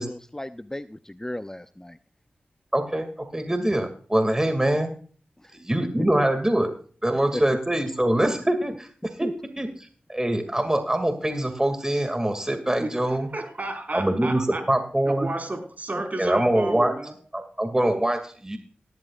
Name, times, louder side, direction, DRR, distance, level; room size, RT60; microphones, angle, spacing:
voice 1, 0.0-2.0 5.4-5.6 7.3-7.4 9.2-9.3, left 1 dB, 15° left, 11 dB, 0.6 m, -35 dB
voice 2, 2.7-4.9 5.5-6.7 7.0-8.9 9.2-9.3 9.6-13.3 13.9-15.3 16.2-16.9 17.3-18.6, right 1 dB, 15° right, 7 dB, 2.3 m, -24 dB
voice 3, 12.8-14.6 15.0-17.1, right 2 dB, 50° right, 3 dB, 5.1 m, -32 dB
18.0 x 12.5 x 2.4 m, 0.43 s
cardioid pair, 45°, 4 cm